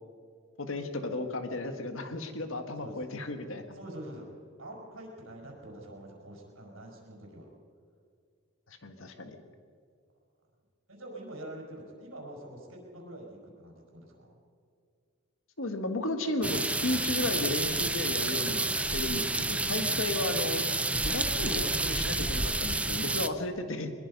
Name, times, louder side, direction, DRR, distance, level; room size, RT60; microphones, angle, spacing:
voice 1, 0.6-3.8 8.7-9.4 15.6-20.6 21.0-23.9, left 2 dB, 70° left, 7 dB, 1.8 m, -34 dB
voice 2, 3.7-4.3 4.6-7.5 10.9-14.4, right 1 dB, 75° right, 1 dB, 5.4 m, -45 dB
sound 1, 16.4-23.3, right 2 dB, 5° right, 0.4 m, -29 dB
22.0 x 22.0 x 5.5 m, 2.2 s
head